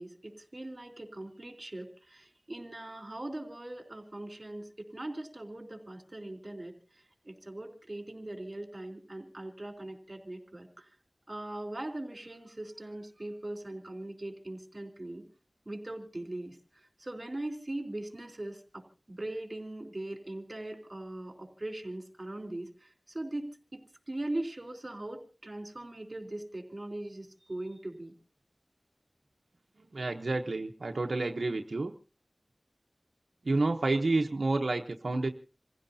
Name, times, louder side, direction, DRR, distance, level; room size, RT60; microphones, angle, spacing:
voice 1, 0.0-6.7 7.2-10.9 11.3-15.2 15.6-23.8 24.1-28.1, right 1 dB, 40° right, 6 dB, 3.4 m, -40 dB
voice 2, 29.9-31.9 33.4-35.3, right 2 dB, 90° right, 4 dB, 0.9 m, -29 dB
28.0 x 16.0 x 2.7 m, 0.34 s
wide cardioid pair, 50°, 0 cm